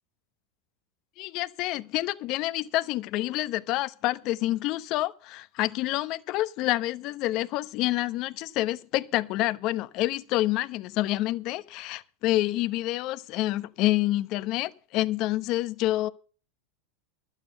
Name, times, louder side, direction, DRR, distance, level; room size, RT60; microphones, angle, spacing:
voice 1, 1.2-16.1, left 16 dB, 50° left, 0.9 m, -28 dB
12.0 x 8.3 x 6.8 m
hypercardioid pair, 115°, 0 cm